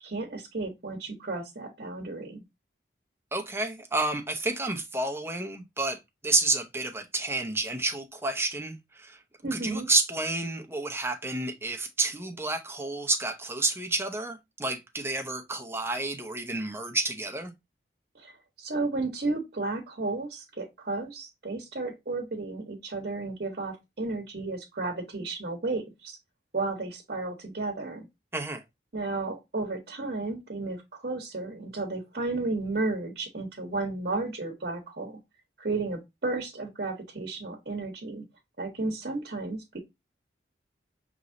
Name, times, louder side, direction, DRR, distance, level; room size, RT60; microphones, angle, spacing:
voice 1, 0.0-2.4 9.4-9.9 18.1-18.3 18.6-26.2 26.5-28.0 28.9-35.2 35.6-38.2 38.6-39.8, right 3 dB, 55° right, 0.9 m, -33 dB
voice 2, 3.3-6.0 6.2-9.2 9.5-17.5 28.3-28.6, right 2 dB, 15° right, 0.6 m, -30 dB
5.3 x 3.0 x 2.5 m
head